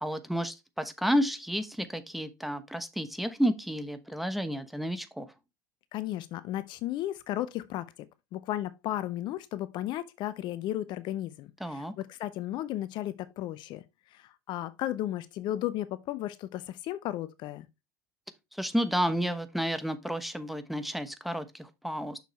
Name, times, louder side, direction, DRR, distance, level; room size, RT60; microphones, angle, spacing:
voice 1, 0.0-5.3 11.6-11.9 18.5-22.2, equal, ahead, 1.0 m, -31 dB
voice 2, 5.9-8.1 8.3-13.8 14.1-17.7, left 13 dB, 50° left, 0.5 m, -34 dB
6.5 x 6.4 x 3.1 m
hypercardioid pair, 80°, 10 cm